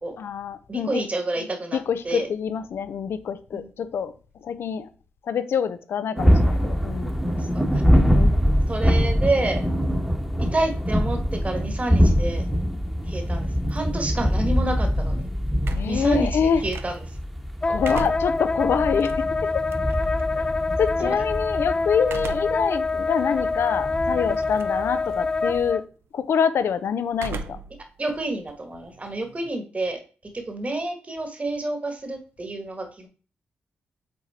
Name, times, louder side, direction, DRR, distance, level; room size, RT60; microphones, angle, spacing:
voice 1, 0.2-1.0 1.7-4.1 4.4-4.9 5.3-7.2 8.1-8.4 10.4-10.5 15.7-16.6 17.7-19.7 20.3-20.5 20.8-25.9 26.1-27.6, left 7 dB, 75° left, 12 dB, 0.6 m, -26 dB
voice 2, 0.7-2.3 3.5-3.7 7.4-8.2 8.7-9.7 10.4-12.4 13.1-15.3 15.9-17.2 21.0-21.1 28.0-33.1, right 2 dB, 35° right, 5 dB, 1.6 m, -29 dB
sound 1, 6.2-25.7, equal, ahead, 1.1 m, -24 dB
sound 2, 15.6-17.2 17.6-20.2 22.0-22.7 23.2-23.3 24.3-24.8 25.1-25.6 27.1-27.8 28.1-29.5, right 5 dB, 70° right, 0.6 m, -37 dB
Wind instrument woodwind instrument, 17.6-25.8, left 3 dB, 25° left, 0.4 m, -26 dB
6.2 x 3.9 x 4.3 m, 0.39 s
cardioid pair, 65°, 4 cm